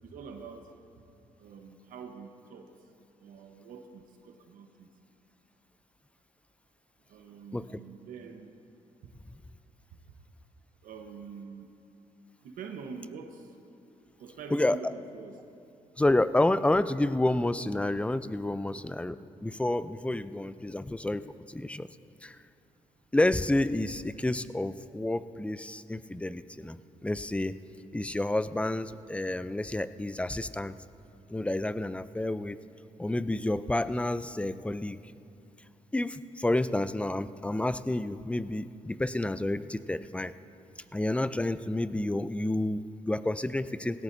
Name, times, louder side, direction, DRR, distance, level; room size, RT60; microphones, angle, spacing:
voice 1, 0.0-0.7 1.4-2.7 3.2-4.9 7.1-8.5 9.0-9.1 10.1-10.2 10.8-11.7 12.4-13.5 14.2-15.4 18.5-18.8, right 5 dB, 80° right, 5 dB, 1.1 m, -45 dB
voice 2, 14.5-14.9 16.0-21.9 22.2-22.4 23.1-27.5 27.9-30.7 31.3-32.6 33.0-35.0 35.9-40.3 40.9-44.0, left 1 dB, 10° left, 14 dB, 0.5 m, -29 dB
19.0 x 17.0 x 2.7 m, 2.7 s
cardioid pair, 75°, 14 cm